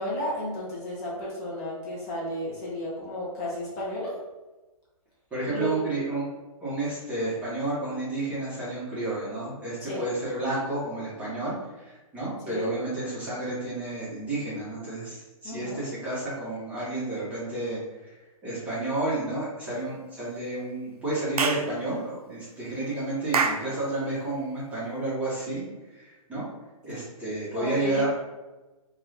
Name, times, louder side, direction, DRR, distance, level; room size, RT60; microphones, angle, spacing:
voice 1, 0.0-4.1 5.5-5.8 9.8-10.0 12.4-12.7 15.4-15.8 27.5-28.1, left 1 dB, 25° left, -6 dB, 0.7 m, -33 dB
voice 2, 5.3-6.3 6.6-18.1 18.4-26.5 26.8-28.1, right 2 dB, 5° right, -10 dB, 0.8 m, -31 dB
Clapping / Chirp tweet, 21.4-21.7 23.3-23.7, right 5 dB, 90° right, 0.4 m, -25 dB
2.4 x 2.3 x 3.2 m, 1.1 s
hypercardioid pair, 150°, 19 cm